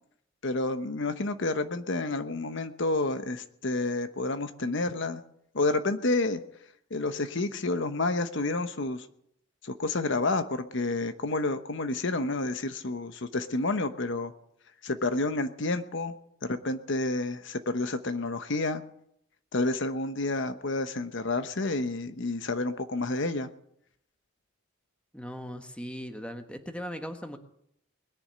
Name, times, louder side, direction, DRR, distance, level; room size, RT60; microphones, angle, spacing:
voice 1, 0.4-5.2 5.5-6.4 6.9-9.1 9.6-14.3 14.8-16.1 16.4-18.8 19.5-23.5, left 2 dB, 60° left, 10 dB, 1.0 m, -29 dB
voice 2, 25.1-27.4, equal, 5° left, 6 dB, 1.3 m, -38 dB
21.0 x 7.0 x 9.7 m, 0.73 s
head